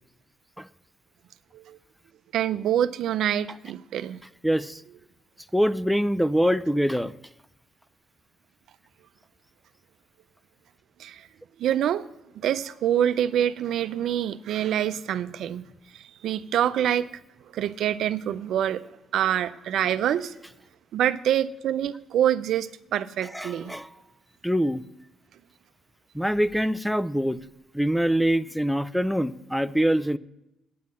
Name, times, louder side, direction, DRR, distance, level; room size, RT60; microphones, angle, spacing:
voice 1, 2.3-4.2 11.0-11.3 11.6-12.1 12.4-15.7 15.9-17.1 17.5-18.8 19.1-20.3 20.9-23.8, right 10 dB, 75° right, 0.5 m, -26 dB
voice 2, 4.4-4.8 5.5-7.1 23.3-23.9 24.4-24.8 26.1-27.4 27.7-30.2, equal, ahead, 0.4 m, -24 dB
9.3 x 7.7 x 7.3 m
cardioid pair, 90°, 0 cm